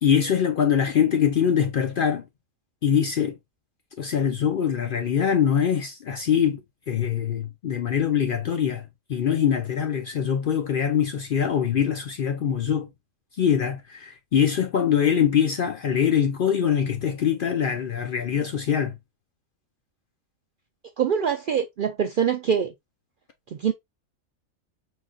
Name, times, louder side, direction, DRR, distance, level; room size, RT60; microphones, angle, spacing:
voice 1, 0.0-2.2 2.8-3.4 4.0-6.6 6.9-8.8 9.1-12.9 13.4-18.9, left 8 dB, 60° left, 0.6 m, -23 dB
voice 2, 21.0-22.7 23.5-23.7, right 7 dB, 65° right, 0.5 m, -24 dB
4.9 x 3.8 x 2.3 m
omnidirectional pair, 1.4 m